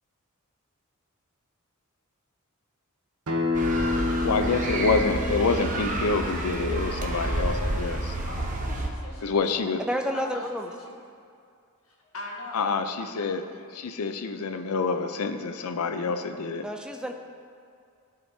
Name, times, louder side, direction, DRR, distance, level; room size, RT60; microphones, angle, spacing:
Acoustic guitar, 3.3-8.5, left 3 dB, 85° right, 0.9 m, -31 dB
sound 1, 3.5-8.9, right 1 dB, 35° right, 0.8 m, -29 dB
voice 1, 4.2-8.1 9.2-9.8 12.5-13.4 13.7-16.6, left 4 dB, 85° left, 8 dB, 0.5 m, -27 dB
voice 2, 8.3-9.5 10.1-11.0 11.9-12.8, left 2 dB, 70° left, -2 dB, 1.4 m, -41 dB
voice 3, 9.8-10.7 16.6-17.1, equal, 5° right, 4 dB, 0.5 m, -30 dB
14.5 x 5.0 x 2.8 m, 2.4 s
head